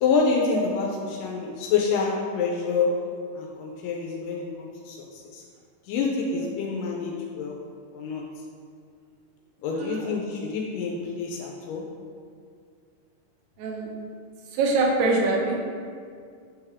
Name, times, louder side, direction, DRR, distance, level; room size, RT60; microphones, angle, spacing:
voice 1, 0.0-3.1 3.3-5.4 5.9-7.5 7.9-8.3 9.6-12.0, left 5 dB, 85° left, -1 dB, 2.2 m, -27 dB
voice 2, 9.8-10.1 13.6-13.9 14.5-15.6, right 3 dB, 70° right, -1 dB, 2.0 m, -24 dB
8.8 x 3.4 x 3.5 m, 2.2 s
omnidirectional pair, 3.8 m